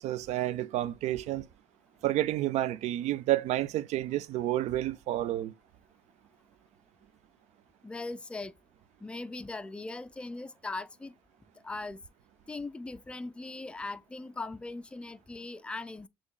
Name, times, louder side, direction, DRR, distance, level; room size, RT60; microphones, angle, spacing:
voice 1, 0.0-1.5 2.0-5.5, right 14 dB, 70° right, 0.4 m, -30 dB
voice 2, 7.8-8.5 9.0-11.1 11.6-12.0 12.5-16.1, left 3 dB, 10° left, 0.3 m, -39 dB
6.2 x 2.9 x 2.3 m
cardioid pair, 80°, 12 cm